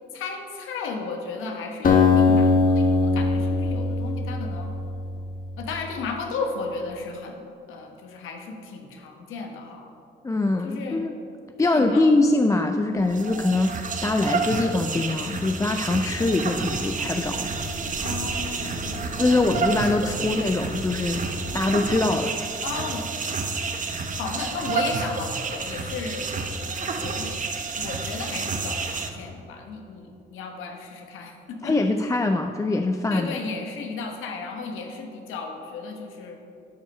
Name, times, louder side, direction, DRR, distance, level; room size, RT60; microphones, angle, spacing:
voice 1, 0.1-4.7 5.6-9.9 10.6-11.0 11.6-12.1 18.0-19.5 20.1-20.3 22.6-23.7 24.1-26.3 26.7-27.4 27.8-31.7 33.1-36.4, left 4 dB, 85° left, 2 dB, 1.1 m, -34 dB
Acoustic guitar, 1.8-5.4, left 4 dB, 45° left, 1.2 m, -21 dB
voice 2, 10.2-11.2 11.6-17.5 19.1-21.2 21.5-22.4 31.6-33.3, left 2 dB, 15° left, 6 dB, 0.4 m, -23 dB
sound 1, 13.0-29.1, right 4 dB, 40° right, 0.9 m, -30 dB
sound 2, 16.1-21.9, right 2 dB, 80° right, 1.6 m, -38 dB
12.0 x 5.4 x 5.4 m, 2.5 s
cardioid pair, 90°, 20 cm